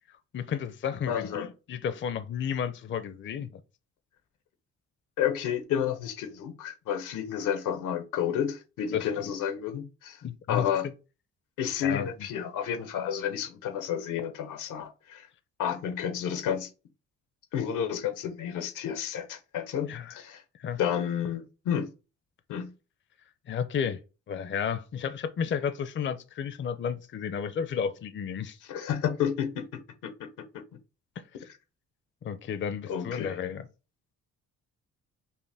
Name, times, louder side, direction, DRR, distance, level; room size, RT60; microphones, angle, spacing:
voice 1, 0.3-3.6 8.9-9.1 10.2-10.6 11.8-12.1 19.9-20.2 20.6-20.8 23.5-24.0 24.3-28.6 31.2-31.3 32.2-33.7, left 7 dB, 40° left, 0.5 m, -32 dB
voice 2, 1.1-1.5 5.2-10.2 10.5-10.9 11.6-15.3 15.6-16.7 17.5-20.4 20.8-21.9 22.5-22.7 28.7-30.6 32.9-33.4, left 9 dB, 85° left, 0.8 m, -31 dB
5.4 x 2.1 x 3.3 m
cardioid pair, 90°, 30 cm